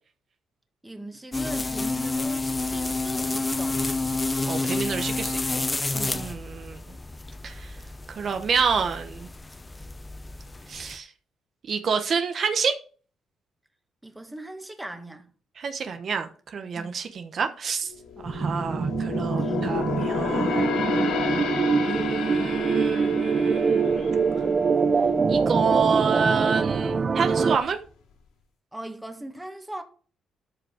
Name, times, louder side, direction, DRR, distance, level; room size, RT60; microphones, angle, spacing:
voice 1, 0.8-3.8 6.2-6.4 14.0-15.3 16.8-17.0 19.4-19.6 20.5-20.7 28.7-29.8, right 1 dB, 10° right, 1.8 m, -39 dB
sound 1, 1.3-11.0, left 3 dB, 20° left, 0.6 m, -30 dB
voice 2, 4.5-5.6 5.9-6.8 7.4-7.7 8.2-9.3 10.7-11.1 11.7-12.7 15.6-17.9 18.2-20.7 21.8-24.2 25.3-27.8, right 6 dB, 55° right, 1.1 m, -28 dB
sound 2, 17.9-25.5 25.8-26.1 26.6-27.3 27.7-27.8, left 5 dB, 85° left, 3.2 m, -31 dB
sound 3, 18.3-27.6, right 5 dB, 40° right, 0.6 m, -24 dB
13.0 x 5.2 x 5.0 m
cardioid pair, 90°, 0 cm